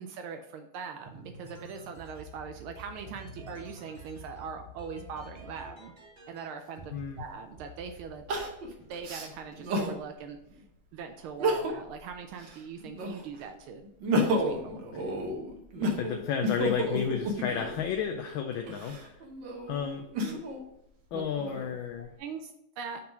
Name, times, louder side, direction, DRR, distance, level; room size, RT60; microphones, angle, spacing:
voice 1, 0.0-5.9 6.3-8.2 8.9-10.4 10.9-13.8 14.3-14.8 20.2-20.4 21.1-21.2 22.2-23.0, right 6 dB, 80° right, 6 dB, 1.5 m, -41 dB
sound 1, 1.0-6.5 6.8-7.2 7.6-9.0, right 2 dB, 30° right, 0.9 m, -48 dB
voice 2, 6.9-7.2 14.9-15.1 15.9-19.2 19.7-20.0 21.1-22.1, left 7 dB, 75° left, 4 dB, 1.3 m, -32 dB
Crying sobbing, 6.9-7.0 8.3-10.0 10.5-10.6 11.3-12.0 12.3-13.4 13.8-17.8 18.5-20.6 21.2-22.0, equal, 65° right, 1.6 m, -31 dB
5.9 x 3.8 x 5.6 m, 0.80 s
omnidirectional pair, 2.3 m